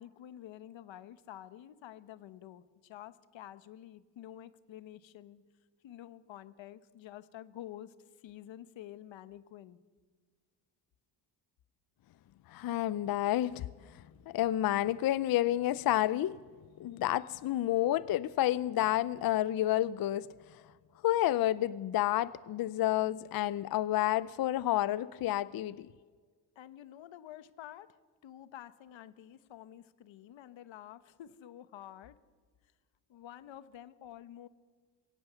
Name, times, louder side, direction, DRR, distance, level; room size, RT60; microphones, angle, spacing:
voice 1, 0.0-5.4 5.8-9.8 26.5-28.0 28.2-32.2 33.1-34.5, left 12 dB, 90° left, 1.1 m, -49 dB
voice 2, 12.5-13.7 13.9-16.4 16.8-20.3 21.0-25.9, left 14 dB, 55° left, 0.5 m, -30 dB
22.0 x 17.5 x 6.9 m
wide cardioid pair, 155°, 44 cm